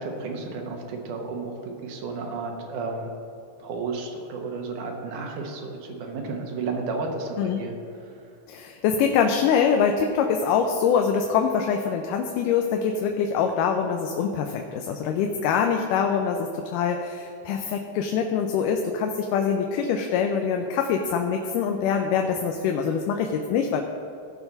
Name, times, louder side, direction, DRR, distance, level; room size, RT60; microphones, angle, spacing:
voice 1, 0.0-3.1 3.6-8.3, right 4 dB, 75° right, 2 dB, 2.6 m, -32 dB
voice 2, 8.5-23.8, left 6 dB, 85° left, 4 dB, 2.2 m, -24 dB
16.5 x 5.8 x 4.0 m, 2.6 s
omnidirectional pair, 3.7 m